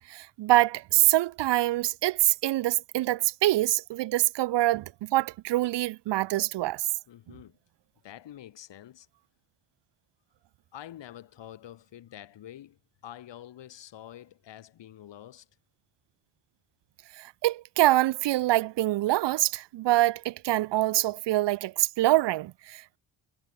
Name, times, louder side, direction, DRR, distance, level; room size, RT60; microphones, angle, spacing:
voice 1, 0.1-6.9 17.2-23.0, right 16 dB, 65° right, 0.6 m, -25 dB
voice 2, 7.1-7.6 8.0-9.1 10.7-15.5, left 11 dB, 70° left, 3.5 m, -47 dB
cardioid pair, 155°, 45 cm